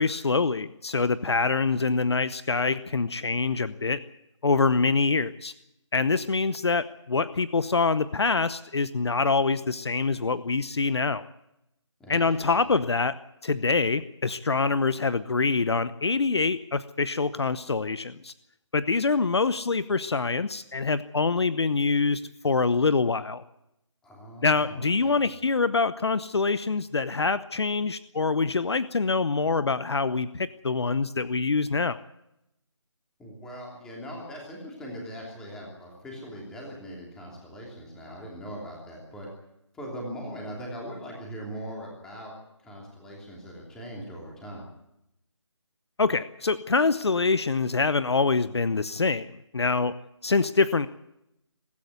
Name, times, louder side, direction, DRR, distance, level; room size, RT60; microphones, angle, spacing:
voice 1, 0.0-4.0 4.4-5.5 5.9-11.2 12.1-13.2 13.4-18.3 18.7-23.4 24.4-32.0 46.0-49.9 50.2-50.9, left 4 dB, 60° left, 15 dB, 0.9 m, -25 dB
voice 2, 12.0-12.7 24.0-25.2 33.2-39.3 39.7-42.3 42.6-44.7, equal, 5° left, -2 dB, 3.1 m, -40 dB
23.0 x 13.0 x 9.5 m, 0.84 s
figure-of-eight pair, 170°, 16 cm